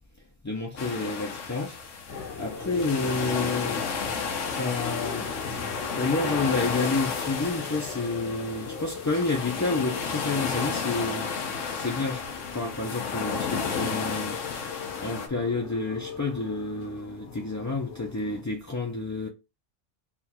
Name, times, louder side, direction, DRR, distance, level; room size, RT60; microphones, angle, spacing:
voice 1, 0.4-1.8 2.4-3.9 4.5-5.3 5.6-12.2 12.5-14.4 14.7-19.3, left 3 dB, 30° left, 0.3 m, -30 dB
sound 1, 0.8-15.3, left 5 dB, 90° left, 1.1 m, -32 dB
sound 2, 2.1-18.4, left 5 dB, 70° left, 1.4 m, -40 dB
3.5 x 2.3 x 4.4 m
omnidirectional pair, 1.2 m